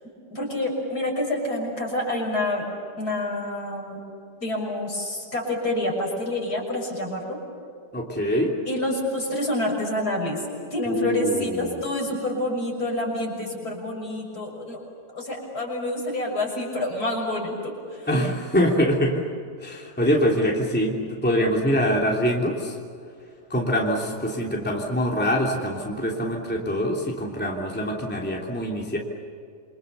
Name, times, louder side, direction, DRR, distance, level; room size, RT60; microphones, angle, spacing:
voice 1, 0.3-2.7 3.0-4.0 4.4-7.4 8.7-10.4 10.7-14.8 15.1-18.1, left 1 dB, 65° left, -1 dB, 7.1 m, -28 dB
voice 2, 7.9-8.5 10.8-11.8 18.1-19.2 19.6-22.8 23.5-29.0, equal, 5° left, -1 dB, 3.1 m, -24 dB
28.0 x 25.5 x 6.9 m, 2.4 s
omnidirectional pair, 1.8 m